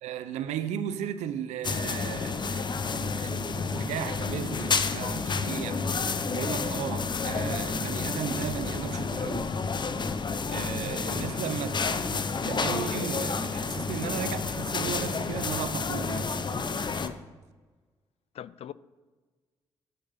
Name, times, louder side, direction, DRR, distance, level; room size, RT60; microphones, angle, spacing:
voice 1, 0.0-5.9 6.3-9.5 10.5-16.5, right 9 dB, 75° right, 0.7 m, -36 dB
sound 1, 1.6-17.1, left 4 dB, 40° left, 0.8 m, -30 dB
voice 2, 18.3-18.7, left 10 dB, 60° left, 0.4 m, -40 dB
9.6 x 7.8 x 5.7 m
hypercardioid pair, 45°, 12 cm